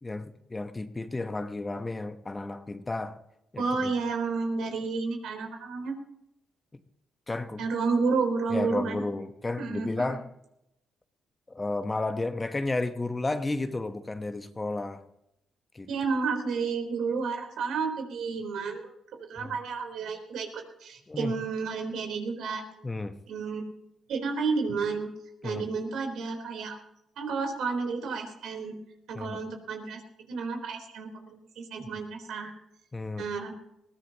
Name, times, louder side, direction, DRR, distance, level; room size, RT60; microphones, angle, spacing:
voice 1, 0.0-3.2 3.5-3.9 7.3-7.6 8.5-10.3 11.5-15.0 15.7-15.9 19.4-19.5 21.1-21.3 22.8-23.2 25.4-25.7 29.1-29.4 31.8-31.9 32.9-33.3, left 2 dB, 20° left, 9 dB, 1.0 m, -32 dB
voice 2, 3.6-5.9 7.6-9.0 9.6-10.2 15.9-18.9 19.3-22.9 23.3-23.6 24.1-25.1 25.4-26.8 27.2-28.8 29.1-30.0 30.3-32.5 33.2-33.5, right 4 dB, 80° right, 3 dB, 3.8 m, -31 dB
21.0 x 16.0 x 2.9 m, 0.83 s
cardioid pair, 90°, 0 cm